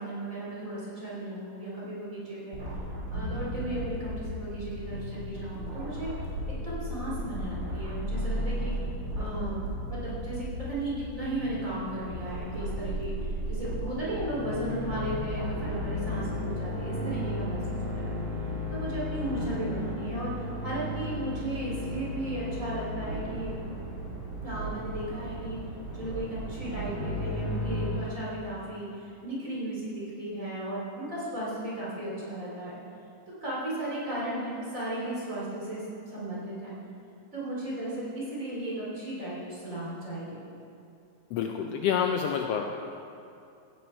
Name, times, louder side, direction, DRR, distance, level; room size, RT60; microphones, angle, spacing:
voice 1, 0.0-2.6 3.1-6.1 6.5-8.7 9.2-18.2 18.7-23.6 24.4-25.6 25.9-32.8 33.4-36.7 37.3-40.4, right 1 dB, 25° right, -7 dB, 3.8 m, -35 dB
sound 1, 2.5-15.8, equal, 45° right, 3.4 m, -35 dB
sound 2, 14.8-27.9, left 1 dB, 70° right, 4.8 m, -34 dB
voice 2, 41.3-42.6, left 8 dB, 85° left, 3 dB, 1.4 m, -27 dB
16.0 x 9.3 x 4.5 m, 2.6 s
omnidirectional pair, 3.5 m